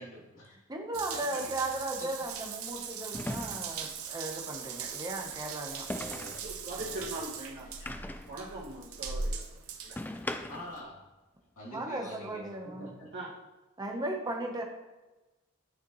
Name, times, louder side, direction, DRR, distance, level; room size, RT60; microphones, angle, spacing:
voice 1, 0.0-0.6 1.1-1.7 2.0-2.3 5.9-7.0 7.8-8.1 10.5-11.1 11.6-13.1, equal, 65° left, -6 dB, 2.9 m, -46 dB
voice 2, 0.7-5.8 11.7-12.9 13.8-14.6, right 2 dB, 20° right, 1 dB, 1.0 m, -36 dB
sound 1, 0.9-1.1 3.1-3.9 5.9-6.5 7.9-8.4 10.0-10.8, left 1 dB, 10° left, 0.3 m, -38 dB
Water tap faucet / Bathtub (filling or washing) / Drip, 0.9-10.8, right 6 dB, 75° right, 0.8 m, -40 dB
voice 3, 6.4-7.7 8.3-10.0 13.1-13.3, right 1 dB, 55° right, -5 dB, 2.2 m, -41 dB
9.5 x 6.7 x 3.1 m, 1.1 s
head